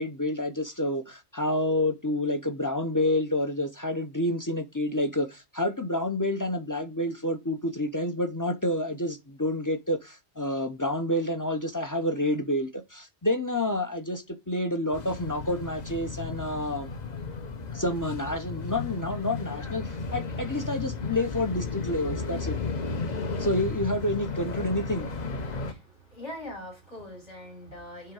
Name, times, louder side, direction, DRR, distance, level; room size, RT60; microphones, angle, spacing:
voice 1, 0.0-16.9 17.7-22.6 23.4-25.1, left 1 dB, 25° left, 0.5 m, -29 dB
sound 1, 14.9-25.7, left 4 dB, 40° left, 0.9 m, -34 dB
voice 2, 25.5-28.1, left 1 dB, 85° left, 4.3 m, -42 dB
7.6 x 3.6 x 4.7 m
omnidirectional pair, 1.2 m